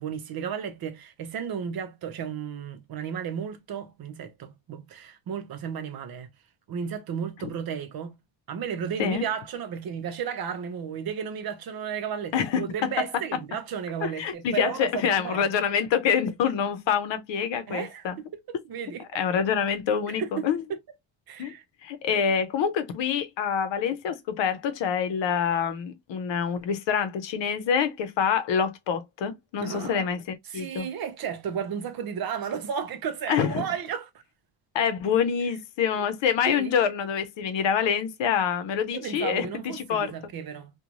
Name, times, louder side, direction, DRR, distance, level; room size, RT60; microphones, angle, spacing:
voice 1, 0.0-6.3 6.7-8.2 8.5-15.5 17.7-18.1 18.5-19.0 20.1-20.5 21.3-21.6 22.1-22.4 29.6-30.1 30.5-34.1 36.0-36.1 36.5-36.7 38.9-40.7, right 7 dB, 50° right, 0.7 m, -33 dB
voice 2, 12.3-12.9 14.0-18.2 19.1-20.6 21.4-21.5 21.8-30.9 33.3-33.7 34.7-40.1, left 7 dB, 70° left, 0.7 m, -26 dB
3.0 x 2.2 x 2.4 m
cardioid pair, 135°, 45 cm